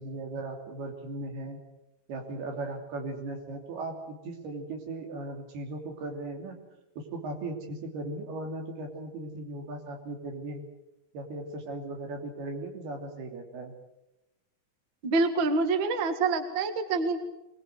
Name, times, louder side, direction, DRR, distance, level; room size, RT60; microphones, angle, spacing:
voice 1, 0.0-1.6 2.1-6.6 7.0-10.6 11.1-13.7, right 2 dB, 85° right, 3 dB, 5.0 m, -37 dB
voice 2, 15.0-17.2, right 3 dB, 40° right, 8 dB, 1.8 m, -26 dB
23.0 x 20.5 x 8.0 m, 0.95 s
omnidirectional pair, 4.4 m